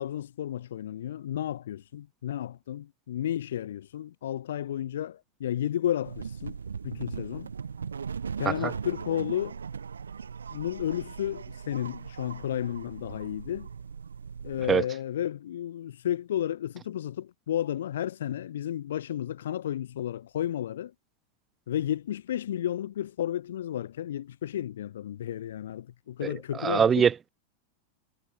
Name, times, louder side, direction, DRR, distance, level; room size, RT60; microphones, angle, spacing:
voice 1, 0.0-6.6 6.8-7.5 8.4-9.6 10.5-13.7 14.4-20.9 21.7-27.1, left 11 dB, 60° left, 1.3 m, -32 dB
sound 1, 6.0-14.7, right 6 dB, 70° right, 1.9 m, -39 dB
voice 2, 26.3-27.3, right 7 dB, 20° right, 0.5 m, -24 dB
figure-of-eight pair, 90°, 0 cm